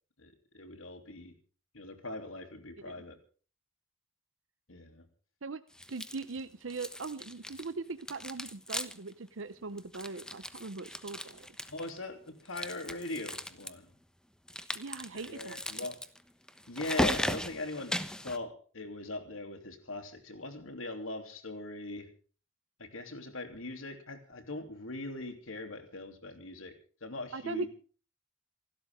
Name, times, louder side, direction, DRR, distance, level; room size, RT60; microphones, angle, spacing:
voice 1, 0.2-1.3 1.7-3.2 4.7-5.0 11.7-13.9 15.3-16.0 16.7-18.0 18.2-22.1 22.8-26.7 27.0-27.7, left 2 dB, 90° left, 6 dB, 3.3 m, -40 dB
sound 1, 5.8-6.4 6.7-7.7 8.0-9.1 9.4-9.5 9.8-12.0 12.5-13.7 14.5-18.4, left 1 dB, 5° left, 1.0 m, -37 dB
voice 2, 5.9-11.5 14.7-15.6 27.3-27.7, right 3 dB, 70° right, 12 dB, 0.8 m, -40 dB
28.0 x 12.5 x 3.7 m, 0.40 s
head